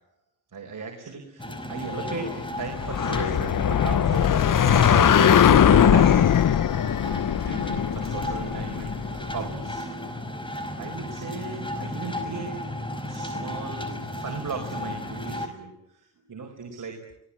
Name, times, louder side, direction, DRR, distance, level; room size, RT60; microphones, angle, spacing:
voice 1, 0.5-6.5 7.4-9.9 10.8-12.6 13.1-17.0, right 4 dB, 45° right, 2 dB, 4.9 m, -36 dB
sound 1, 1.4-15.5, left 1 dB, 10° left, 5.0 m, -34 dB
sound 2, 1.9-2.5 3.9-4.7 5.5-6.3 6.8-7.2 7.6-8.0 9.5-9.7, left 8 dB, 85° left, 3.6 m, -41 dB
sound 3, 2.7-9.3, left 9 dB, 45° left, 0.9 m, -20 dB
23.0 x 19.0 x 8.7 m, 0.85 s
supercardioid pair, 60°, 44 cm